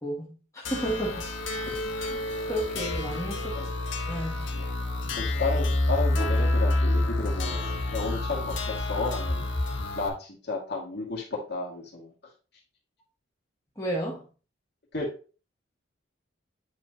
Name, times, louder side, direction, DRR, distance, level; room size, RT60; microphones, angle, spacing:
voice 1, 0.0-1.3 2.0-3.6 4.1-5.1 13.8-14.3, right 1 dB, 15° left, 1.9 m, -33 dB
sound 1, 0.7-10.1, left 2 dB, 65° left, 1.5 m, -28 dB
voice 2, 5.1-9.4 10.0-12.1 14.9-15.1, left 3 dB, 50° left, 2.2 m, -32 dB
9.0 x 4.8 x 2.9 m
head